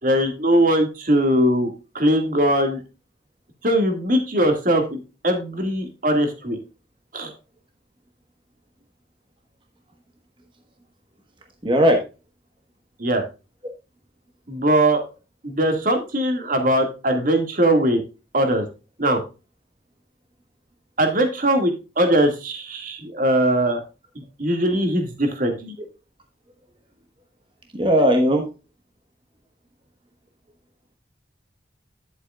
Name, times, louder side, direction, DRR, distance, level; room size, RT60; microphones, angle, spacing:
voice 1, 0.0-2.8 3.6-6.6 7.1-7.3 13.0-13.2 14.5-15.0 15.4-18.0 18.3-18.6 19.0-19.2 21.0-23.8 24.4-25.7, right 1 dB, 45° right, 5 dB, 2.1 m, -20 dB
voice 2, 11.6-12.0 27.7-28.5, equal, 25° right, 3 dB, 1.2 m, -17 dB
10.5 x 8.1 x 2.4 m, 0.30 s
head